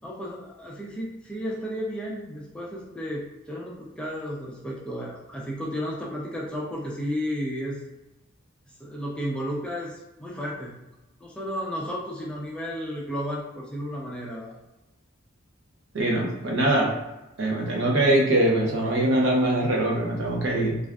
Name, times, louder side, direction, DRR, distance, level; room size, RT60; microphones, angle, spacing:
voice 1, 0.0-7.8 8.8-10.7 11.2-14.5, equal, 5° left, -4 dB, 0.4 m, -33 dB
voice 2, 15.9-16.9 17.4-20.8, right 1 dB, 60° right, -2 dB, 0.7 m, -22 dB
3.3 x 2.4 x 2.3 m, 0.99 s
head